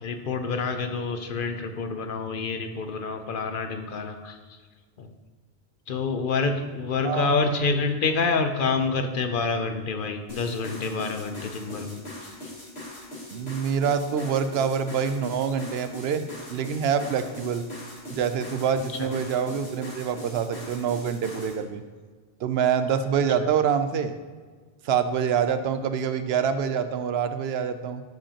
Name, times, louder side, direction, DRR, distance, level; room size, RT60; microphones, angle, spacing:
voice 1, 0.0-4.4 5.0-5.1 5.9-12.0 19.0-19.1, left 4 dB, 60° left, 7 dB, 0.7 m, -27 dB
voice 2, 7.0-7.5 13.3-16.2 16.5-17.7 18.1-21.8 22.4-24.1 24.8-28.0, right 7 dB, 80° right, 10 dB, 0.8 m, -26 dB
sound 1, 10.3-21.6, left 1 dB, 85° left, 2.2 m, -41 dB
11.5 x 5.1 x 2.9 m, 1.5 s
omnidirectional pair, 1.0 m